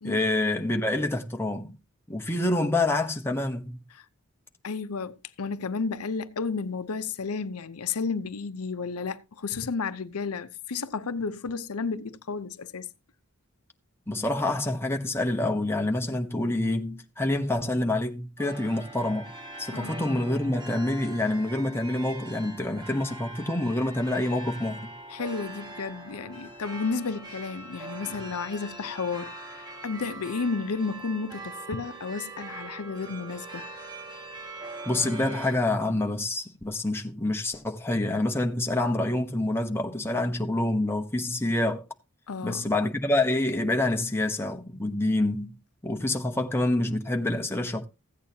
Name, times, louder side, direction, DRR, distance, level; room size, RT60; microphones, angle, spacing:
voice 1, 0.0-1.8 2.1-3.8 14.1-19.3 19.6-24.9 34.8-41.9 42.4-45.6 45.8-47.8, left 1 dB, 10° left, 1.0 m, -27 dB
voice 2, 4.6-12.9 19.7-19.9 25.1-33.6 42.3-42.7, left 4 dB, 85° left, 0.7 m, -32 dB
sound 1, 18.4-35.6, right 2 dB, 20° right, 1.4 m, -42 dB
15.0 x 8.7 x 2.8 m
head